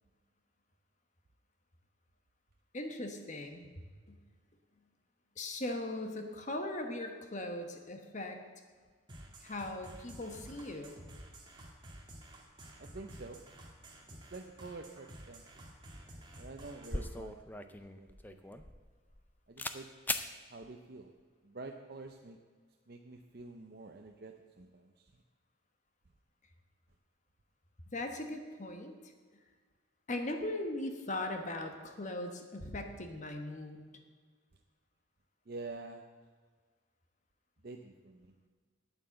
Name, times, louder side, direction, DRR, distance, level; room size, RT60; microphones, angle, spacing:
voice 1, 2.7-3.7 4.1-4.2 5.4-8.4 9.4-11.0 27.9-28.9 30.1-33.8, left 1 dB, 35° left, 5 dB, 1.1 m, -39 dB
sound 1, 9.1-17.1, right 1 dB, 20° right, 1.8 m, -52 dB
voice 2, 12.8-13.4 14.3-15.7 16.4-18.6 19.5-19.9 20.5-21.1 21.4-22.4 22.9-25.1 35.5-36.0 37.6-38.3, right 3 dB, 45° right, 3 dB, 0.6 m, -48 dB
sound 2, 16.2-16.3 16.6-19.3 19.6-19.8 20.1-20.3, left 2 dB, 10° left, 0.4 m, -39 dB
9.1 x 9.0 x 7.6 m, 1.5 s
head